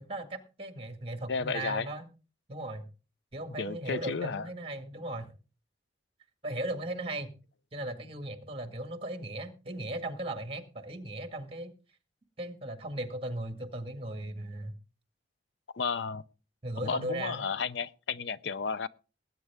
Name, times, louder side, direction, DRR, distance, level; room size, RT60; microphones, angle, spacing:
voice 1, 0.0-2.1 2.5-2.9 3.3-5.3 6.4-7.4 7.7-11.7 12.4-14.8 16.6-17.5, right 1 dB, 30° right, 1.8 m, -37 dB
voice 2, 1.3-1.9 3.6-4.5 15.7-16.2 16.8-18.9, left 5 dB, 75° left, 0.5 m, -33 dB
19.0 x 9.2 x 3.5 m
head